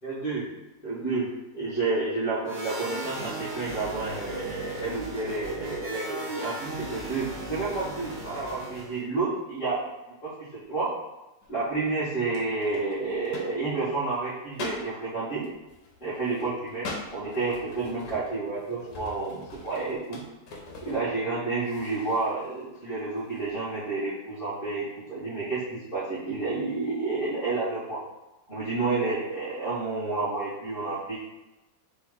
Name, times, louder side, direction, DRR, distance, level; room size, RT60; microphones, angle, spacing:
voice 1, 0.0-0.5 0.8-9.9 10.2-10.9 11.5-15.5 16.0-20.2 20.8-28.0 28.5-31.2, right 3 dB, 35° left, -12 dB, 1.5 m, -30 dB
sound 1, 2.5-9.0, right 1 dB, 40° right, 0.8 m, -37 dB
sound 2, 11.4-11.8 12.3-14.0 14.5-14.9 15.4-21.4 21.6-22.3 22.7-22.8 23.2-23.5, left 3 dB, 70° left, 1.4 m, -42 dB
4.5 x 3.1 x 3.8 m, 1.0 s
omnidirectional pair, 1.8 m